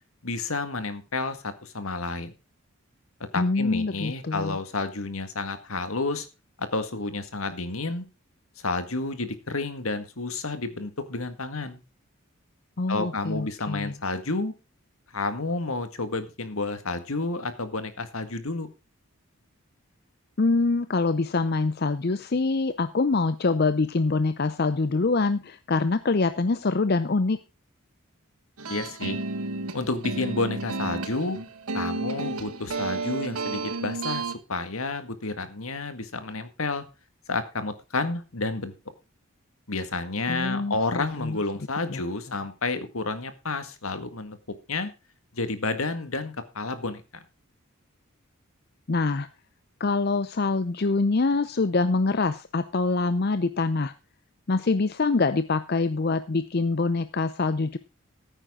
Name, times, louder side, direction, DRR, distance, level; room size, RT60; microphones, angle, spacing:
voice 1, 0.2-2.3 3.3-6.3 6.6-8.1 8.6-11.8 12.9-14.5 15.1-18.7 28.7-29.2 29.7-31.4 31.7-36.8 37.3-38.8 39.7-44.4 44.7-44.9 45.3-47.0, left 3 dB, 75° left, 10 dB, 1.9 m, -30 dB
voice 2, 3.3-4.6 12.8-13.9 20.4-27.4 40.3-41.4 41.9-42.0 48.9-49.3 49.8-53.9 54.5-57.8, left 3 dB, 45° left, 12 dB, 0.6 m, -25 dB
sound 1, 28.6-34.3, right 3 dB, 85° right, 1.4 m, -32 dB
15.0 x 9.1 x 3.7 m, 0.28 s
head